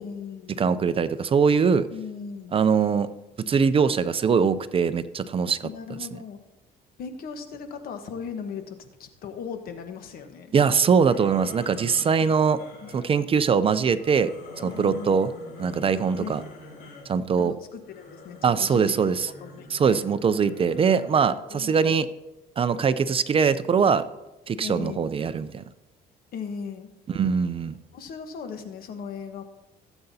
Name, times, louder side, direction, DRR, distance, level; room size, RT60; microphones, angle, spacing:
voice 1, 0.0-0.6 1.9-2.5 5.6-6.4 7.0-10.5 12.8-12.9 14.6-15.2 16.2-16.5 17.4-18.9 19.4-20.0 21.4-22.0 24.6-25.1 26.3-26.9 27.9-29.4, left 6 dB, 65° left, 7 dB, 1.2 m, -38 dB
voice 2, 0.6-1.9 2.5-3.1 3.5-5.7 10.5-12.6 12.9-14.3 14.6-15.3 15.6-16.4 17.1-17.5 18.4-19.3 19.7-22.1 22.6-24.0 24.5-25.6 27.1-27.8, right 6 dB, 35° right, 13 dB, 0.5 m, -22 dB
sound 1, 11.1-13.1 13.9-17.1 17.8-21.2, left 2 dB, 80° left, 3.3 m, -45 dB
17.0 x 7.9 x 2.8 m, 0.99 s
cardioid pair, 110°, 17 cm